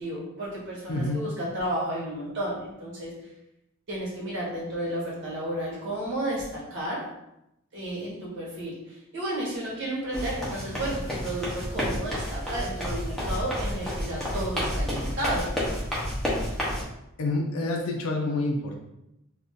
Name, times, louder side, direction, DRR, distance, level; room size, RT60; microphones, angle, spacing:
voice 1, 0.0-3.3 3.9-7.0 7.7-15.4, right 1 dB, 60° right, -5 dB, 1.3 m, -32 dB
voice 2, 0.9-1.2 17.2-18.8, left 2 dB, 80° left, 1 dB, 0.5 m, -28 dB
sound 1, 10.1-16.8, equal, ahead, 0.7 m, -30 dB
2.5 x 2.3 x 3.7 m, 0.85 s
head